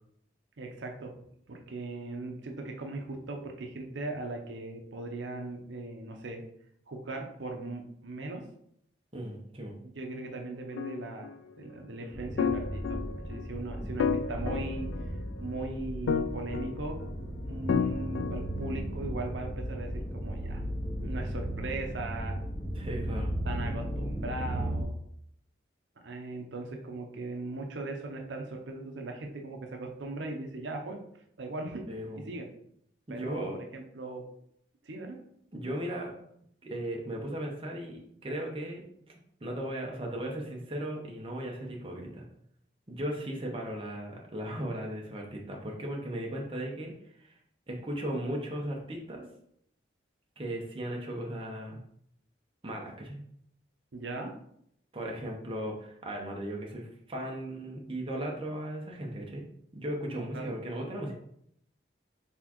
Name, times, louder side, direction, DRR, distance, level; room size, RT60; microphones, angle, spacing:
voice 1, 0.6-1.1 1.5-6.4 6.9-8.4 9.8-11.3 11.6-14.9 15.4-17.0 17.5-20.6 21.0-22.4 23.4-25.0 26.0-31.0 31.4-31.8 32.3-32.5 33.1-34.2 34.8-35.2 53.9-54.3 60.1-60.6, right 2 dB, 75° right, 3 dB, 0.6 m, -39 dB
voice 2, 9.1-9.8 22.7-23.3 31.9-32.2 33.1-33.6 35.5-36.1 36.6-38.8 39.4-42.3 42.9-46.9 47.2-47.4 47.7-49.2 50.4-51.8 52.6-53.2 54.9-59.4 59.7-61.1, right 1 dB, 30° right, 0 dB, 0.7 m, -36 dB
sound 1, 10.7-11.3 12.4-13.4 14.0-15.4 16.1-17.1 17.7-18.8, left 6 dB, 90° left, 0.3 m, -32 dB
sound 2, 12.1-24.8, equal, 65° left, 1.5 m, -36 dB
4.2 x 3.5 x 2.9 m, 0.70 s
head